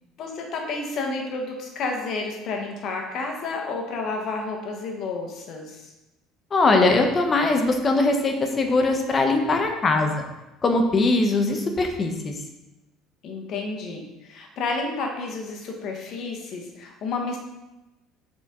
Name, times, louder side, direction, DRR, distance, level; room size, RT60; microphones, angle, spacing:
voice 1, 0.2-5.9 13.2-17.4, left 3 dB, 45° left, 2 dB, 1.2 m, -31 dB
voice 2, 6.5-10.2 10.6-12.3, left 2 dB, 25° left, 4 dB, 0.7 m, -21 dB
6.9 x 4.4 x 3.7 m, 0.99 s
cardioid pair, 155°, 0 cm